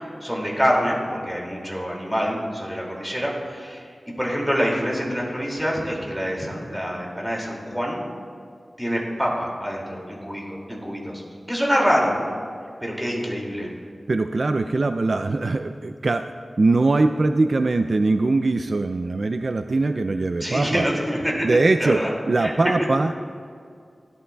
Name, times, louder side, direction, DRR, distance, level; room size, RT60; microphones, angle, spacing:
voice 1, 0.2-8.0 8.8-11.2 11.5-12.2 12.8-13.7 20.4-21.5 21.8-22.1 22.4-22.5, equal, 5° right, -2 dB, 2.3 m, -25 dB
voice 2, 14.1-16.3 16.6-20.9 21.4-22.0 22.3-23.1, right 3 dB, 55° right, 8 dB, 0.3 m, -21 dB
17.0 x 11.0 x 2.3 m, 2.3 s
wide cardioid pair, 95°, 0 cm